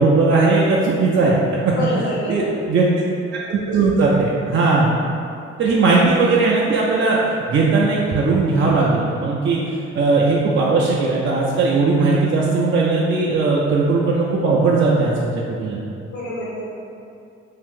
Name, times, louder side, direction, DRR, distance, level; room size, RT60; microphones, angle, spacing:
voice 1, 0.0-1.4 1.7-2.9 3.5-4.9 5.6-7.2 7.5-9.6 9.9-15.8, right 3 dB, 40° right, -4 dB, 0.5 m, -18 dB
voice 2, 1.7-2.7 16.1-16.7, left 1 dB, 60° left, -7 dB, 1.3 m, -27 dB
2.7 x 2.5 x 3.6 m, 2.5 s
hypercardioid pair, 55°, 32 cm